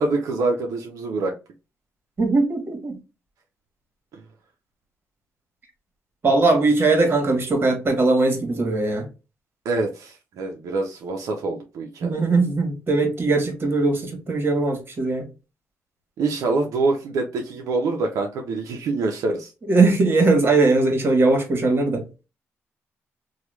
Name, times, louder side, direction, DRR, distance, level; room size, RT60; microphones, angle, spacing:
voice 1, 0.0-1.3 4.1-4.2 9.6-12.2 16.2-19.5, right 3 dB, 80° right, 0.6 m, -25 dB
voice 2, 2.2-2.9 6.2-9.1 12.0-15.3 19.7-22.0, right 3 dB, 40° right, 1.4 m, -20 dB
3.0 x 2.3 x 3.2 m
cardioid pair, 70°, 5 cm